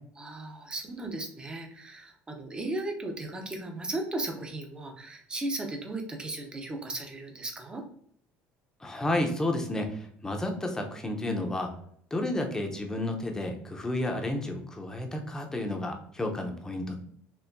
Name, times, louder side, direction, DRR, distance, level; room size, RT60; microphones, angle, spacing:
voice 1, 0.2-7.8, right 2 dB, 20° right, 3 dB, 0.8 m, -36 dB
voice 2, 8.8-11.7 12.1-17.0, left 1 dB, 15° left, 3 dB, 0.8 m, -31 dB
4.5 x 2.8 x 2.6 m, 0.65 s
cardioid pair, 115°, 5 cm